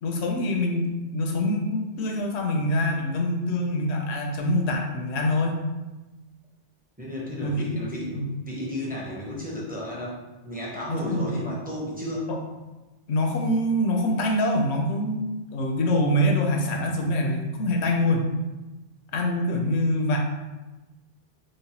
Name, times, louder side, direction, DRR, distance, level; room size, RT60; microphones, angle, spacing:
voice 1, 0.0-5.5 7.4-7.8 8.2-8.3 10.9-11.3 12.3-12.4 13.1-15.2 15.5-18.3 19.1-20.2, left 1 dB, 70° left, 2 dB, 0.8 m, -25 dB
voice 2, 7.0-10.2 10.4-12.4, left 1 dB, 15° right, -5 dB, 0.4 m, -33 dB
3.1 x 2.1 x 4.0 m, 1.1 s
omnidirectional pair, 1.2 m